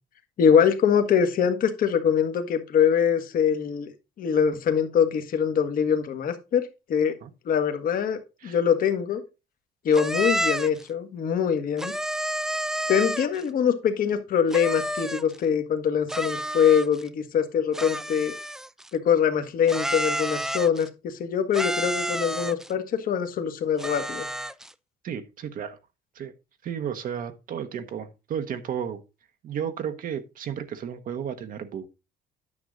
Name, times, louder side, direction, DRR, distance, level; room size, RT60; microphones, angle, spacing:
voice 1, 0.4-7.1 7.4-9.2 9.8-11.9 12.9-18.3 18.9-24.2, left 7 dB, 55° left, 1.5 m, -23 dB
sound 1, 9.9-10.8 11.8-13.4 14.5-15.4 16.1-17.1 17.7-18.9 19.7-20.9 21.5-22.7 23.8-24.7, right 1 dB, 5° right, 0.4 m, -30 dB
voice 2, 25.0-25.8 26.1-26.3 26.6-29.0 29.4-31.9, right 8 dB, 55° right, 1.0 m, -33 dB
9.6 x 6.1 x 3.8 m
cardioid pair, 110°, 17 cm